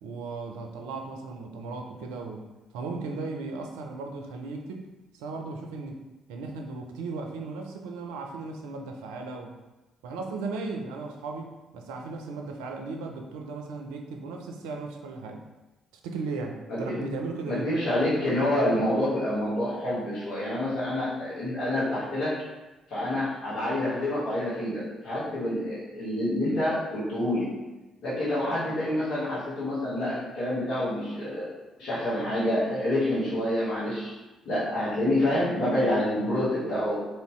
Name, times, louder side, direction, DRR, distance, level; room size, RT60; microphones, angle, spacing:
voice 1, 0.0-2.5 2.7-4.9 5.1-6.0 6.3-9.5 10.0-15.4 16.0-17.7, right 3 dB, 75° right, 2 dB, 0.4 m, -36 dB
voice 2, 16.7-17.0 17.5-22.4 22.9-27.6 28.0-31.5 31.8-34.1 34.4-37.0, left 1 dB, 65° left, -8 dB, 1.2 m, -27 dB
3.0 x 2.7 x 3.1 m, 1.1 s
hypercardioid pair, 45°, 0 cm